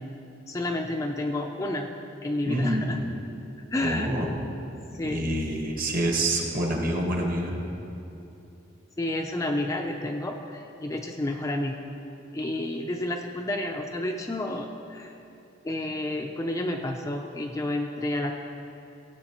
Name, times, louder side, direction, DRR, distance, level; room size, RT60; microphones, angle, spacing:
voice 1, 0.5-1.9 2.2-3.0 3.7-4.1 4.9-5.3 9.0-11.8 12.3-15.1 15.6-18.3, left 1 dB, 15° left, 2 dB, 0.4 m, -30 dB
voice 2, 2.5-3.1 3.8-4.4 5.0-7.5, right 1 dB, 45° right, 0 dB, 1.3 m, -27 dB
17.0 x 8.3 x 3.0 m, 2.8 s
head